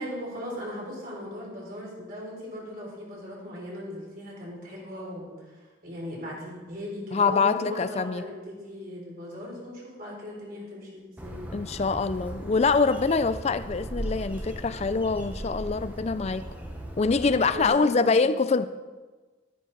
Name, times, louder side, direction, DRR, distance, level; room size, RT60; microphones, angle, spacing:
voice 1, 0.0-11.5 17.5-18.2, equal, 45° right, -3 dB, 3.6 m, -38 dB
voice 2, 7.1-8.2 11.5-16.4 17.0-18.7, left 4 dB, 30° left, 13 dB, 0.4 m, -24 dB
Bird, 11.2-17.7, right 1 dB, 10° right, 1.0 m, -38 dB
12.0 x 10.0 x 4.0 m, 1.3 s
head